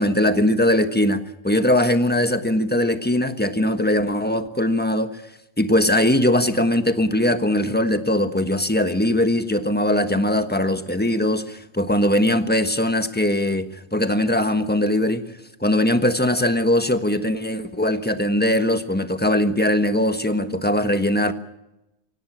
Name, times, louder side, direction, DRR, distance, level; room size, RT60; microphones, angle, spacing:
voice 1, 0.0-5.2 5.6-15.2 15.6-21.3, left 1 dB, 5° left, 8 dB, 1.3 m, -20 dB
24.5 x 17.0 x 8.8 m, 0.92 s
omnidirectional pair, 1.5 m